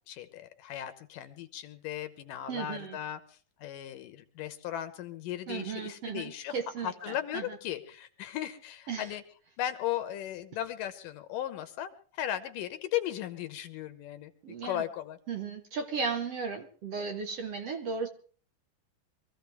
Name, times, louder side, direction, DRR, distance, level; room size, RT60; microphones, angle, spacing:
voice 1, 0.1-6.6 6.8-9.2 9.6-14.3 14.6-15.2, left 12 dB, 75° left, 11 dB, 2.4 m, -37 dB
voice 2, 2.5-3.0 5.5-7.6 8.9-9.1 14.4-14.8 15.3-18.1, right 5 dB, 60° right, 5 dB, 1.8 m, -35 dB
24.0 x 14.5 x 3.4 m, 0.41 s
omnidirectional pair, 4.1 m